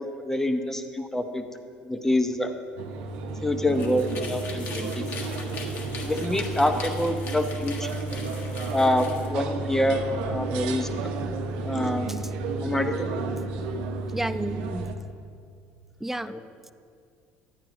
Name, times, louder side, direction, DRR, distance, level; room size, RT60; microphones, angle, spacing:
voice 1, 0.0-1.4 1.8-2.5 3.4-5.1 6.0-8.0 8.7-10.9 11.6-12.1 12.6-13.1 16.3-16.4, left 1 dB, 10° left, 7 dB, 0.8 m, -26 dB
sound 1, 2.8-14.9, right 3 dB, 85° right, 0.7 m, -32 dB
sound 2, 3.6-9.3, left 4 dB, 60° left, 1.4 m, -41 dB
sound 3, 8.1-11.7, right 5 dB, 55° right, 0.8 m, -43 dB
voice 2, 12.1-12.8 14.1-14.9 16.0-16.4, right 1 dB, 5° right, 13 dB, 0.3 m, -33 dB
10.5 x 9.0 x 3.0 m, 2.2 s
supercardioid pair, 90°, 4 cm